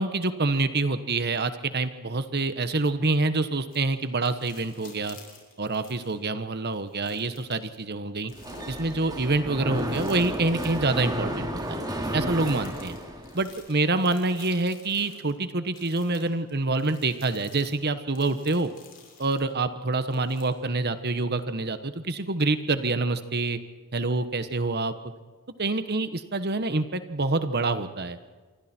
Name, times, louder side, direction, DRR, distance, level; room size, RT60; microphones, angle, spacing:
voice 1, 0.0-5.2 5.6-8.3 8.7-11.8 12.1-13.0 13.3-18.7 19.2-23.6 23.9-24.9 25.6-28.2, right 3 dB, 50° right, 11 dB, 1.3 m, -26 dB
sound 1, 3.7-6.2 6.7-7.8 8.3-9.1 9.7-11.0 11.6-11.7 12.4-15.3 15.7-19.5 20.1-20.8 21.4-21.5, left 5 dB, 40° left, 6.2 m, -51 dB
Mechanisms, 8.3-13.5, equal, 20° right, 2.9 m, -32 dB
27.5 x 23.5 x 4.5 m, 1.4 s
head